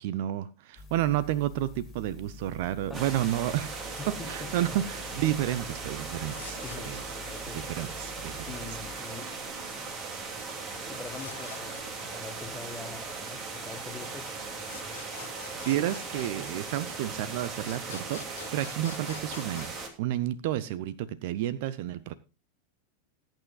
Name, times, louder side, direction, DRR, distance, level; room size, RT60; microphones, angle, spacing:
voice 1, 0.0-3.7 4.1-7.0 7.5-8.8 15.7-22.1, right 13 dB, 50° right, 0.6 m, -31 dB
sound 1, 0.8-9.0, left 3 dB, 25° left, 2.7 m, -47 dB
sound 2, 2.9-19.9, right 4 dB, 30° right, 2.5 m, -38 dB
voice 2, 4.0-4.8 6.6-7.9 8.4-9.3 10.8-14.4, left 4 dB, 10° left, 1.5 m, -44 dB
sound 3, 6.0-7.4 10.9-12.5 14.6-17.2 17.6-19.8, left 8 dB, 65° left, 0.8 m, -47 dB
20.0 x 9.0 x 2.4 m
figure-of-eight pair, 90°, 0 cm